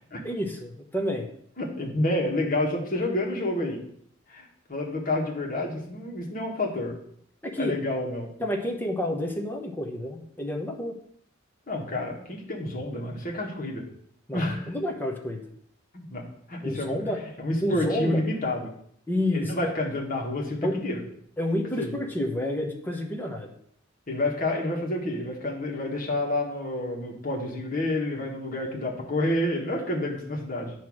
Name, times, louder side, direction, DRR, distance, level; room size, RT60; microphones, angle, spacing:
voice 1, 0.2-1.2 7.4-7.8 8.4-11.0 14.3-15.4 16.6-17.2 17.6-18.2 19.1-19.5 20.6-20.8 21.4-23.5, left 1 dB, 10° left, 2 dB, 0.9 m, -29 dB
voice 2, 1.6-3.8 4.3-7.0 7.6-8.3 11.7-13.9 14.3-14.7 15.9-17.0 17.4-18.7 19.3-21.0 21.8-21.9 24.1-30.7, left 1 dB, 45° left, -1 dB, 1.6 m, -29 dB
9.0 x 3.1 x 6.2 m, 0.67 s
head